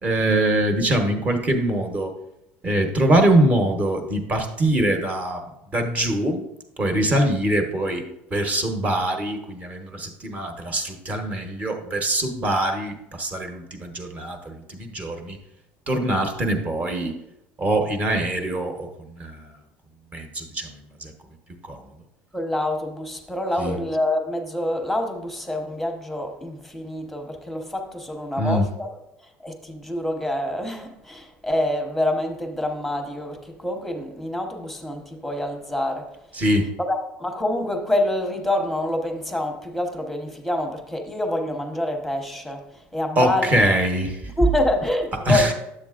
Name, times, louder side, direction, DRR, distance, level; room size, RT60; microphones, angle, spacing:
voice 1, 0.0-2.1 2.6-5.4 5.7-6.4 6.8-8.0 8.3-15.4 15.9-17.1 17.6-18.9 19.2-19.5 20.1-20.7 21.0-21.1 21.6-21.8 23.6-23.8 28.4-28.7 36.3-36.7 43.2-44.3 45.3-45.5, right 1 dB, 25° right, 1.1 m, -23 dB
voice 2, 22.3-29.0 29.4-36.1 36.8-42.7 42.9-43.6 44.4-45.5, left 1 dB, ahead, 0.9 m, -26 dB
10.5 x 7.6 x 2.5 m
cardioid pair, 135°, 6 cm